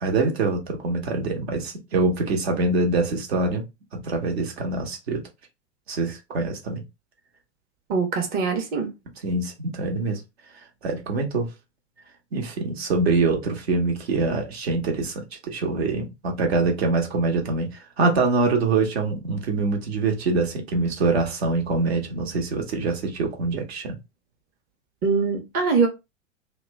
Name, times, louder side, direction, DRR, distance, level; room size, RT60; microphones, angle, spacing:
voice 1, 0.0-3.6 3.9-5.2 5.9-6.8 9.2-10.2 10.8-11.5 12.3-24.0, right 3 dB, 60° right, 1.0 m, -24 dB
voice 2, 7.9-8.9 25.0-25.9, right 5 dB, 25° right, 0.8 m, -22 dB
3.0 x 2.1 x 3.2 m
figure-of-eight pair, 90°, 36 cm